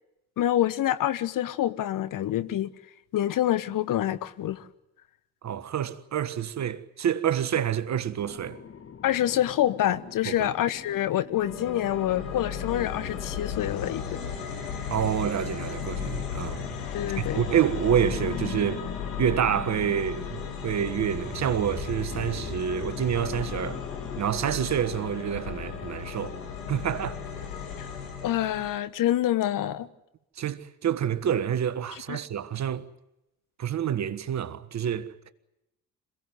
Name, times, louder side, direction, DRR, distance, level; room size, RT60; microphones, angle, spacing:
voice 1, 0.4-2.7 3.1-4.7 9.0-14.0 16.9-17.4 27.8-27.9 28.2-29.9 32.1-32.2, left 12 dB, 45° left, 1.3 m, -26 dB
voice 2, 5.4-8.6 10.2-10.5 14.9-16.8 17.1-18.8 19.2-23.8 24.2-26.4 26.7-27.2 30.4-32.9 33.6-35.1, right 9 dB, 40° right, 1.5 m, -28 dB
sound 1, 8.2-24.2, left 6 dB, 30° left, 1.7 m, -41 dB
sound 2, 11.3-28.8, left 7 dB, 70° left, 4.4 m, -36 dB
27.5 x 17.5 x 9.5 m
figure-of-eight pair, 50°, 44 cm